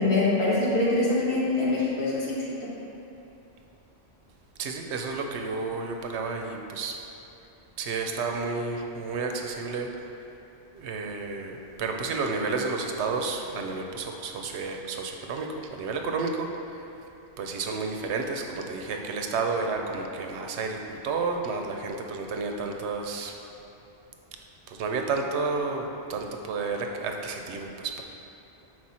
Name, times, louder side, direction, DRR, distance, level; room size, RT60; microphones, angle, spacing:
voice 1, 0.0-2.4, left 2 dB, 75° left, -7 dB, 1.6 m, -24 dB
voice 2, 4.6-7.0 7.8-9.9 10.7-16.5 17.4-23.3 24.7-28.0, right 4 dB, 90° right, 3 dB, 0.9 m, -31 dB
6.1 x 4.6 x 4.2 m, 2.9 s
omnidirectional pair, 1.1 m